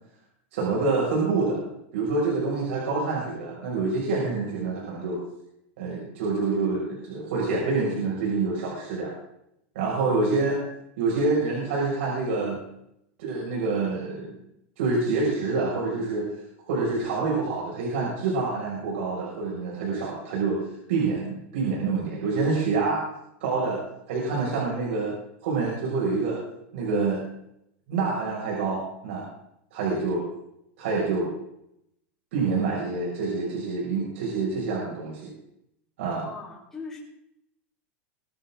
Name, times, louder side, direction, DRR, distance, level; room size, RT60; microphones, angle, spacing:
voice 1, 0.5-1.6 1.9-5.2 5.8-9.1 9.7-10.6 11.0-12.6 13.2-14.4 14.8-16.3 16.6-23.1 23.4-23.8 24.1-25.1 25.4-26.4 26.7-27.2 27.9-29.3 29.7-30.2 30.8-31.3 32.3-35.3 36.0-36.3, right 3 dB, 75° right, -4 dB, 6.0 m, -27 dB
voice 2, 36.1-37.0, left 4 dB, 5° left, -3 dB, 4.6 m, -40 dB
23.5 x 11.5 x 3.8 m, 0.78 s
supercardioid pair, 170°, 7 cm